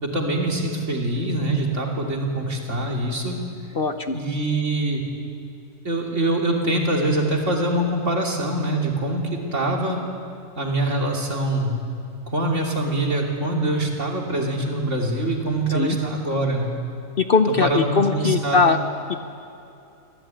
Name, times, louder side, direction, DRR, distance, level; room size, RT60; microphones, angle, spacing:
voice 1, 0.0-3.4 4.1-5.0 5.8-10.0 10.6-11.7 12.3-16.7 17.5-18.7, right 1 dB, 60° right, 0 dB, 3.3 m, -24 dB
voice 2, 3.7-4.2 15.7-16.0 17.2-18.8 19.1-19.2, left 4 dB, 50° left, 8 dB, 0.9 m, -20 dB
25.5 x 16.0 x 9.1 m, 2.8 s
omnidirectional pair, 1.4 m